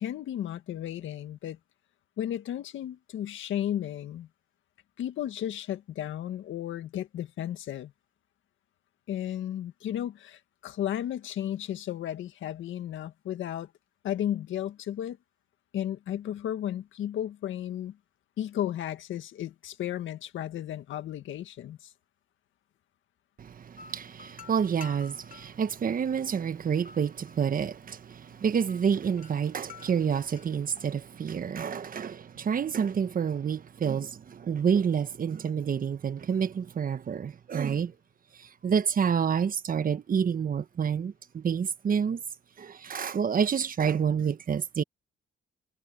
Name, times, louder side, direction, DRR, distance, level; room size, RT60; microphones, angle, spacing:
voice 1, 0.0-1.6 2.2-4.3 5.0-7.9 9.1-13.7 14.0-15.2 15.7-18.0 18.4-21.9, left 11 dB, 75° left, 1.9 m, -34 dB
voice 2, 23.4-37.9 38.4-42.2 42.6-44.8, right 7 dB, 45° right, 1.2 m, -28 dB
sound 1, 23.8-31.1, left 6 dB, 40° left, 2.7 m, -51 dB
cardioid pair, 90°, 20 cm